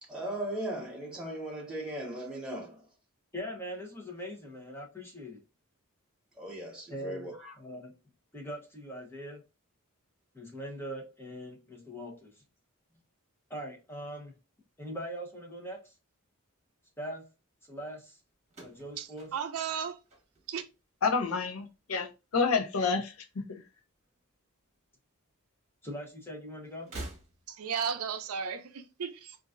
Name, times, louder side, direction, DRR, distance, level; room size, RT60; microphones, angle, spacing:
voice 1, 0.0-2.9 6.3-7.5, right 1 dB, 5° right, 1.1 m, -38 dB
voice 2, 3.3-5.4 6.9-7.9 8.3-9.4 10.3-12.4 13.5-14.4 14.8-15.9 17.0-17.3 17.7-18.2 18.6-19.3 25.8-26.9, equal, 10° left, 0.9 m, -41 dB
sound 1, 18.5-20.8 21.1-21.7 22.8-23.8 24.0-24.1 25.3-25.4 26.8-27.8, right 2 dB, 30° right, 1.3 m, -47 dB
voice 3, 19.0-20.0 20.5-20.6 27.5-29.4, right 7 dB, 80° right, 0.5 m, -35 dB
voice 4, 21.0-23.1, left 5 dB, 75° left, 0.6 m, -28 dB
3.9 x 2.5 x 2.4 m
head